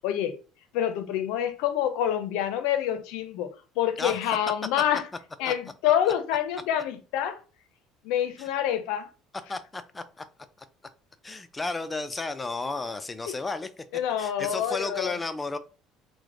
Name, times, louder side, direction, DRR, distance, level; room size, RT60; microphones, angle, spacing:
voice 1, 0.0-0.4 0.7-5.0 5.4-7.4 8.0-9.1 13.3-13.4 13.9-15.1, left 10 dB, 80° left, 0.5 m, -27 dB
voice 2, 9.5-10.2 11.2-13.7 14.2-15.6, left 3 dB, 15° left, 0.4 m, -33 dB
3.1 x 2.1 x 3.7 m
cardioid pair, 105°, 0 cm